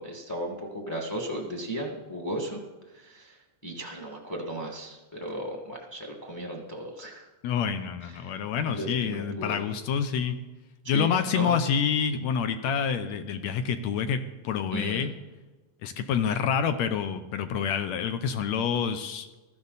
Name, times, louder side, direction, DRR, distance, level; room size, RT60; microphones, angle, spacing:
voice 1, 0.0-2.6 2.9-7.3 8.2-8.3 8.7-9.6 10.8-11.1 11.3-11.5 14.7-15.1, right 1 dB, 10° left, 1 dB, 1.1 m, -35 dB
voice 2, 7.4-10.4 10.9-15.1 15.8-19.3, left 7 dB, 70° left, 9 dB, 1.8 m, -27 dB
15.5 x 13.5 x 4.1 m, 1.2 s
omnidirectional pair, 3.6 m